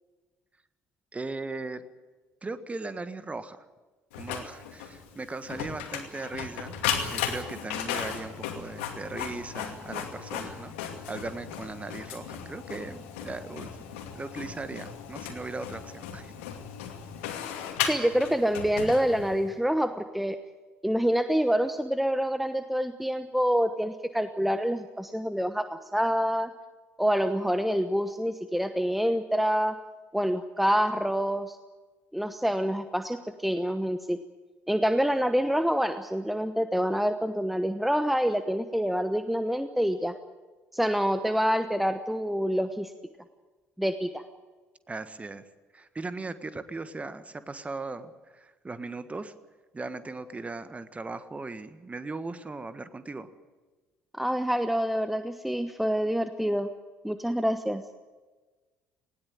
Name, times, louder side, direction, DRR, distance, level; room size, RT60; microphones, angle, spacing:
voice 1, 1.1-1.8 2.4-3.6 4.1-10.7 11.1-13.7 14.1-16.3 44.9-45.5 45.7-49.3 49.7-53.3, right 3 dB, 20° right, 12 dB, 1.6 m, -38 dB
Printer, 4.1-19.5, left 8 dB, 65° left, 2.4 m, -36 dB
voice 2, 17.8-20.4 20.8-25.6 25.9-26.5 27.0-29.7 30.1-31.6 32.1-34.2 34.7-40.1 40.7-42.9 43.8-44.2 54.1-56.7 57.0-57.8, equal, ahead, 10 dB, 1.1 m, -26 dB
19.5 x 17.5 x 9.1 m, 1.3 s
figure-of-eight pair, 55°, 7 cm